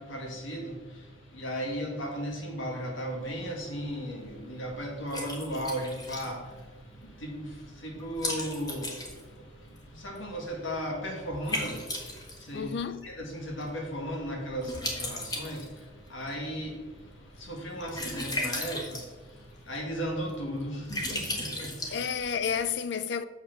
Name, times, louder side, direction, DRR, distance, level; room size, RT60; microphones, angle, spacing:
voice 1, 0.0-12.7 13.0-22.0, equal, 75° left, 2.0 m, -36 dB
Liquid, 3.2-22.6, left 1 dB, 20° left, 1.3 m, -39 dB
voice 2, 12.5-13.1 21.9-23.3, left 7 dB, 55° left, 0.4 m, -31 dB
7.0 x 5.9 x 6.1 m
head